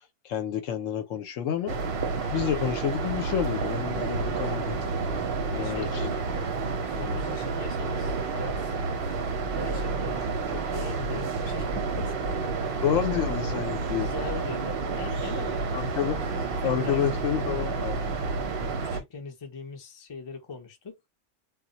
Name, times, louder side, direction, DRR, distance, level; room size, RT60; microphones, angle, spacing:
voice 1, 0.2-1.8 2.3-4.8 5.5-6.1 6.9-7.2 12.8-14.1 15.7-16.2 16.6-18.2, left 9 dB, 70° left, 0.9 m, -29 dB
sound 1, 1.7-19.0, right 4 dB, 55° right, 0.7 m, -30 dB
voice 2, 5.6-6.2 7.0-8.8 9.6-12.8 13.9-15.8 16.3-17.4 18.6-21.0, left 4 dB, 35° left, 0.4 m, -41 dB
2.3 x 2.1 x 3.8 m
omnidirectional pair, 1.5 m